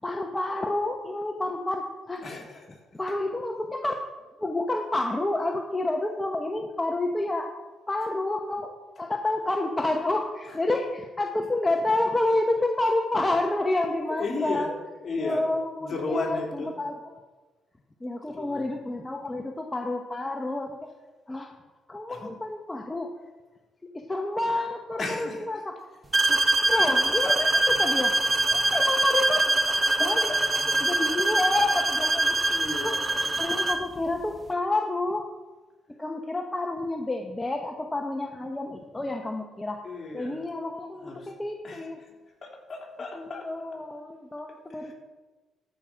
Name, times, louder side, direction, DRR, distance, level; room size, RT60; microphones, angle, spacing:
voice 1, 0.0-2.3 2.9-4.0 4.4-7.5 7.9-14.7 15.2-17.2 18.0-20.9 21.3-21.5 21.9-23.1 23.9-25.7 26.3-26.4 26.7-28.1 28.5-29.4 30.0-30.2 30.8-32.4 32.8-33.0 33.4-35.3 36.0-39.8 40.1-42.0 43.1-44.9, left 2 dB, 15° left, 2 dB, 0.9 m, -29 dB
voice 2, 2.2-2.8 3.1-3.2 8.0-8.1 10.4-10.6 11.2-11.3 14.1-14.7 15.0-15.4 15.8-16.7 18.2-18.7 22.1-22.3 25.0-25.6 28.7-28.8 29.3-30.4 32.5-33.5 39.8-40.4 40.9-41.3 41.6-41.9 42.4-43.5 44.7-44.9, left 3 dB, 40° left, -1 dB, 3.3 m, -35 dB
sound 1, 26.1-33.9, right 2 dB, 30° right, 0.7 m, -24 dB
14.0 x 5.9 x 5.1 m, 1.2 s
cardioid pair, 90°, 0 cm